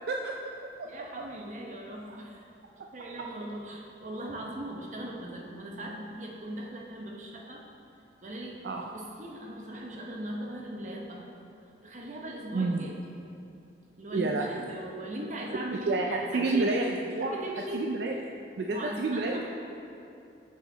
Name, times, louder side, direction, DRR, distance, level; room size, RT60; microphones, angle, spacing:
voice 1, 0.1-0.9 1.2-1.3 2.1-2.2 2.8-2.9 3.2-3.3 8.6-8.9 12.5-12.9 14.1-14.8 15.7-17.3 17.7-18.2 18.6-19.4, right 3 dB, 65° right, 1 dB, 0.3 m, -30 dB
voice 2, 0.8-2.5 2.9-7.6 8.2-8.6 8.9-11.3 11.8-13.0 14.0-16.7 17.2-17.9 18.7-19.4, right 1 dB, 40° right, -1 dB, 0.8 m, -39 dB
6.8 x 4.9 x 3.8 m, 2.7 s
head